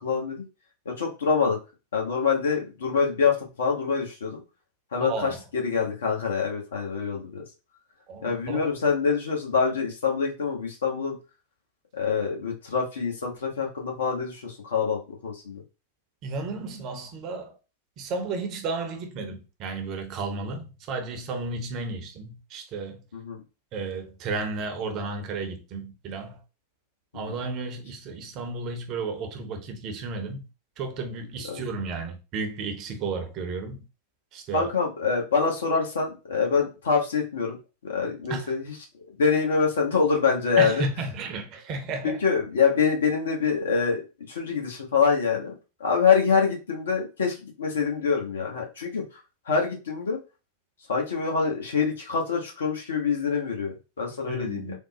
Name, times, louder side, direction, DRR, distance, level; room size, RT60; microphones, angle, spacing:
voice 1, 0.0-0.4 0.9-1.6 1.9-4.4 4.9-7.4 8.2-11.2 11.9-15.6 23.1-23.4 27.1-27.3 31.5-31.6 34.5-37.6 37.8-38.7 39.2-40.8 42.0-44.0 44.3-45.5 45.8-49.0 49.5-50.2 50.9-54.8, left 5 dB, 65° left, 0.9 m, -25 dB
voice 2, 5.0-5.4 8.1-8.7 16.2-17.5 18.0-23.0 23.7-26.4 27.1-30.4 30.8-33.8 34.3-34.7 38.3-38.5 40.6-42.2 54.3-54.8, right 3 dB, 40° right, 0.6 m, -33 dB
3.5 x 2.0 x 2.8 m
figure-of-eight pair, 90°, 0 cm